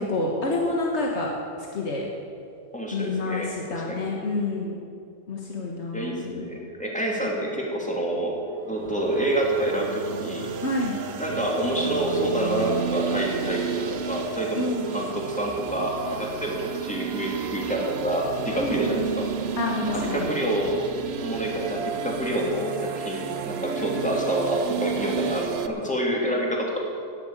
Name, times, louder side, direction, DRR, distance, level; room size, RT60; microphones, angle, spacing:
voice 1, 0.0-1.3 1.6-2.1 2.9-4.8 5.3-6.5 10.6-11.0 14.5-14.9 18.6-19.0 19.6-20.3, left 2 dB, 85° left, -1 dB, 1.8 m, -28 dB
voice 2, 2.7-4.0 5.9-8.4 8.6-10.5 11.2-19.3 19.9-20.7 21.2-26.9, right 1 dB, 5° left, -2 dB, 2.6 m, -27 dB
sound 1, 8.8-25.7, right 7 dB, 70° right, 1.0 m, -32 dB
11.5 x 10.5 x 8.8 m, 2.5 s
omnidirectional pair, 1.1 m